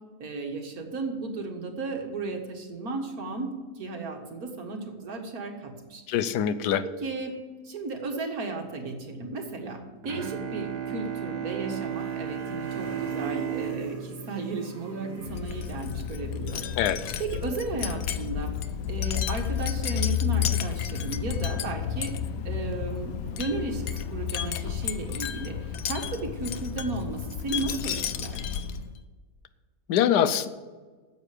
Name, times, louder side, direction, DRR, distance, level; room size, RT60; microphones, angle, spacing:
voice 1, 0.2-6.0 6.8-7.3 7.6-16.7 17.2-18.5 18.9-22.1 22.4-28.5, right 3 dB, 65° right, 3 dB, 2.0 m, -34 dB
voice 2, 6.1-6.8 16.8-17.0 29.9-30.5, left 9 dB, 85° left, 13 dB, 1.2 m, -23 dB
Bowed string instrument, 10.0-15.7, right 8 dB, 80° right, 1.7 m, -35 dB
sound 1, 11.7-16.1, equal, 20° right, 2.0 m, -44 dB
Wind chime, 15.2-29.0, left 9 dB, 70° left, 1.0 m, -31 dB
9.4 x 7.7 x 8.3 m, 1.4 s
omnidirectional pair, 1.7 m